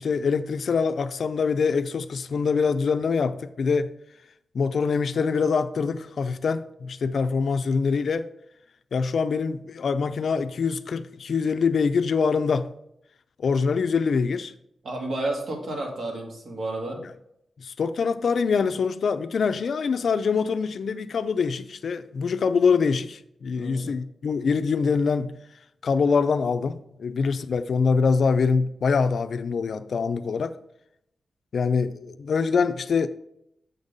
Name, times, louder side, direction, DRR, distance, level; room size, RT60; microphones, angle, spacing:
voice 1, 0.0-3.9 4.5-8.3 8.9-12.7 13.4-14.5 17.6-25.3 25.8-30.6 31.5-33.1, left 5 dB, 65° left, 0.4 m, -24 dB
voice 2, 14.8-17.0 23.6-23.9, right 2 dB, 65° right, 2.0 m, -31 dB
7.3 x 5.3 x 4.0 m
wide cardioid pair, 140°, 0 cm